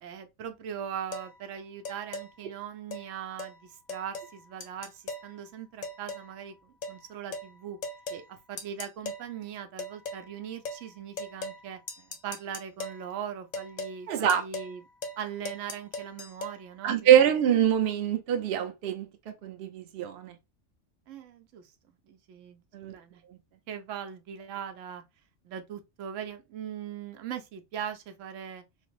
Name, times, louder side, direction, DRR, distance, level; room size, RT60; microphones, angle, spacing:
voice 1, 0.0-7.8 8.3-11.8 12.2-14.8 15.2-17.2 21.1-21.7 22.1-22.6 22.9-23.2 23.7-25.0 25.4-28.6, right 8 dB, 80° right, 0.9 m, -40 dB
sound 1, 1.1-1.3 1.9-2.3 2.9-3.1 3.4-3.5 3.9-4.3 4.6-5.3 5.8-6.3 6.8-7.0 7.3-7.5 7.8-8.2 8.6-9.2 9.8-10.2 10.7-10.8 11.2-11.6 11.9-13.0 13.5-14.0 14.3-14.7 15.0-15.2 15.5-16.6, left 2 dB, 50° left, 0.5 m, -38 dB
voice 2, 14.1-14.4 16.8-20.4 22.7-23.0 23.3-23.4, right 10 dB, 60° right, 0.7 m, -24 dB
3.2 x 2.0 x 2.9 m
omnidirectional pair, 1.3 m